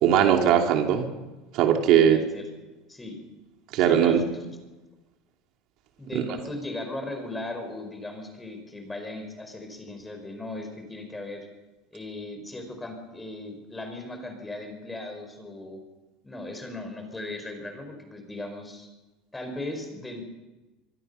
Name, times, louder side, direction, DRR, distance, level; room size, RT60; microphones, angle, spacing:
voice 1, 0.0-1.1 1.5-2.2 3.7-4.2 6.1-6.2, right 9 dB, 55° right, 3 dB, 2.6 m, -19 dB
voice 2, 1.9-2.5 2.9-3.2 3.8-4.2 6.0-11.5 11.9-15.8 16.2-18.9 19.3-20.2, left 2 dB, 10° left, 5 dB, 4.8 m, -37 dB
25.5 x 23.0 x 5.6 m, 1.1 s
supercardioid pair, 145°, 0 cm